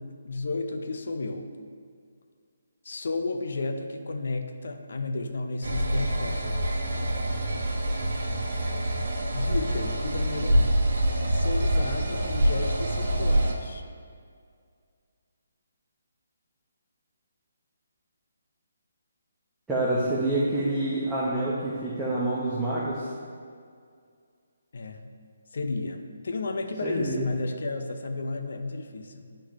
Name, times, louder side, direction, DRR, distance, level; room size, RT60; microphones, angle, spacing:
voice 1, 0.0-1.5 2.8-6.8 9.3-10.8 11.3-13.8 24.7-25.1 25.5-29.3, left 3 dB, 65° left, 5 dB, 0.7 m, -33 dB
sound 1, 5.6-13.5, right 1 dB, 65° right, 1.1 m, -26 dB
voice 2, 19.7-23.1 26.8-27.3, right 2 dB, 5° right, -10 dB, 0.9 m, -27 dB
11.0 x 4.4 x 3.1 m, 2.1 s
hypercardioid pair, 165°, 0 cm